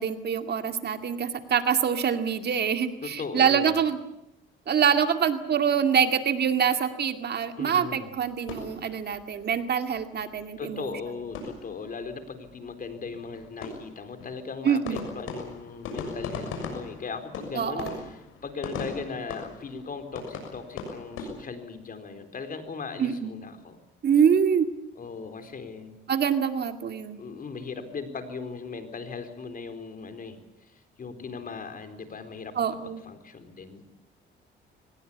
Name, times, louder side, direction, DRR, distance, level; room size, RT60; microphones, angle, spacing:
voice 1, 0.0-4.0 4.7-10.9 14.6-15.1 17.6-17.9 23.0-23.3 24.0-24.7 26.1-27.2 32.6-33.0, right 7 dB, 55° right, 8 dB, 2.2 m, -25 dB
voice 2, 3.0-3.8 7.6-8.1 10.6-23.8 25.0-26.0 27.2-33.8, left 5 dB, 45° left, 8 dB, 4.1 m, -38 dB
sound 1, 8.1-9.6 9.9-10.0 10.3-10.4 10.7-12.2 12.4-12.5 12.8-21.3, left 4 dB, 85° left, 6.7 m, -39 dB
24.0 x 20.0 x 8.6 m, 0.82 s
cardioid pair, 90°, 20 cm